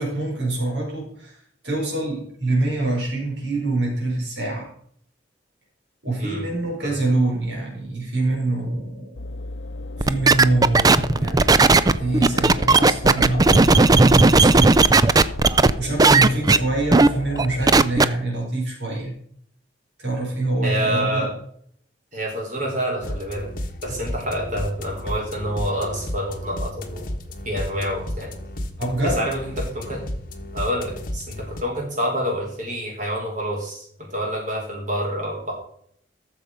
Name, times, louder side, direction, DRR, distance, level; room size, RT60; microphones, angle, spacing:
voice 1, 0.0-4.7 6.0-9.2 10.0-11.6 12.0-14.8 15.8-19.1 20.0-21.3 28.8-29.3, right 2 dB, 75° right, -2 dB, 4.5 m, -25 dB
sound 1, 9.2-17.8, left 2 dB, 80° left, 0.7 m, -35 dB
sound 2, 10.0-15.7 16.0-16.6 16.9-17.1 17.4-18.0, right 3 dB, 20° right, 0.4 m, -15 dB
voice 2, 20.6-21.3 22.1-23.5 23.8-27.0 27.4-28.3 29.0-30.0 30.5-35.5, equal, 45° right, -2 dB, 5.1 m, -27 dB
sound 3, 23.0-31.6, left 1 dB, 50° left, 1.4 m, -33 dB
13.0 x 7.0 x 5.1 m, 0.65 s
head